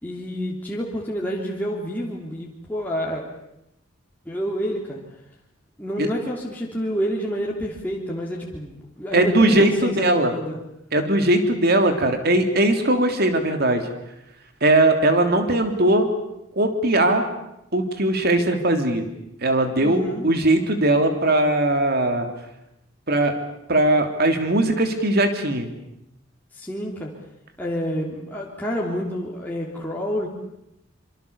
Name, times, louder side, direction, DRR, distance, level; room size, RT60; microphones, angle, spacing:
voice 1, 0.0-3.3 4.3-5.0 5.8-10.6 19.8-20.3 26.6-27.1 27.6-30.3, equal, 10° left, -3 dB, 3.0 m, -28 dB
voice 2, 9.1-10.3 10.9-13.8 14.6-16.1 16.5-17.2 17.7-19.0 19.4-22.3 23.1-23.3 23.7-25.7, right 1 dB, 55° right, 6 dB, 3.3 m, -19 dB
26.0 x 25.5 x 7.1 m, 0.84 s
head